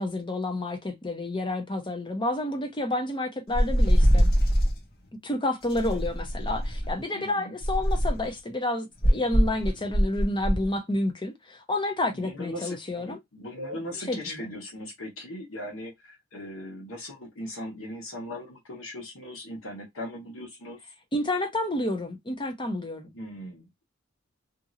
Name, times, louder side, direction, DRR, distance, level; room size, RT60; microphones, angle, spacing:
voice 1, 0.0-4.3 5.2-13.2 14.1-14.4 21.1-23.1, left 1 dB, 25° left, 0.7 m, -30 dB
sound 1, 3.5-4.8 5.7-7.0 7.6-8.3 9.0-10.6, equal, 50° left, 0.9 m, -23 dB
voice 2, 4.1-4.4 7.1-7.5 12.1-20.8 23.1-23.8, left 1 dB, 85° left, 1.1 m, -39 dB
2.8 x 2.7 x 2.4 m
head